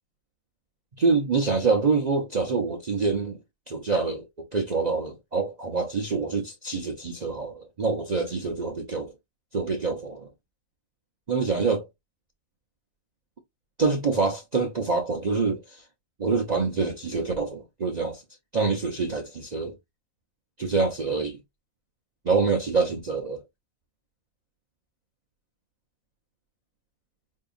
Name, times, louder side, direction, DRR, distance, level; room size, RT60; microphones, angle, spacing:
voice 1, 1.0-3.4 3.7-9.1 9.5-10.3 11.3-11.8 13.8-15.8 16.2-18.2 18.5-19.8 20.6-21.4 22.2-23.4, right 4 dB, 60° right, 0.4 m, -26 dB
5.3 x 2.7 x 2.4 m
omnidirectional pair, 1.7 m